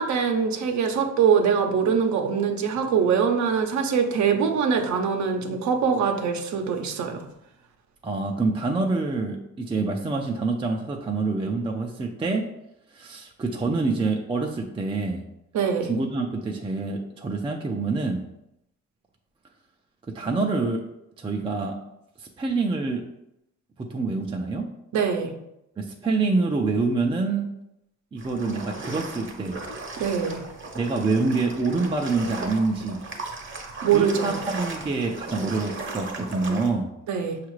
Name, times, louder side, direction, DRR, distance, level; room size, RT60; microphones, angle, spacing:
voice 1, 0.0-7.3 15.5-15.9 24.9-25.4 30.0-30.4 33.8-34.4 37.1-37.4, right 6 dB, 70° right, 5 dB, 0.7 m, -23 dB
voice 2, 8.0-12.5 12.9-15.2 15.8-18.3 20.1-20.8 21.2-21.8 22.2-23.0 23.8-24.7 25.8-27.5 28.1-29.6 30.7-33.0 33.9-36.9, right 3 dB, 20° right, 1 dB, 0.4 m, -26 dB
sound 1, 28.2-36.7, right 3 dB, 40° right, 0.8 m, -36 dB
5.5 x 2.4 x 3.1 m, 0.84 s
cardioid pair, 90°, 30 cm